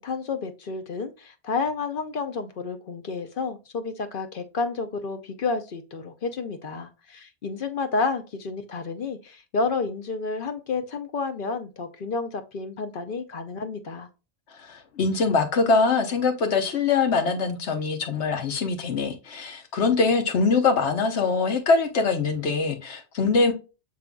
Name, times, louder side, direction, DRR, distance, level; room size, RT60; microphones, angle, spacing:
voice 1, 0.0-14.1, left 4 dB, 55° left, 0.7 m, -30 dB
voice 2, 14.6-23.5, left 4 dB, 70° left, 1.2 m, -23 dB
6.5 x 3.5 x 2.2 m
omnidirectional pair, 1.2 m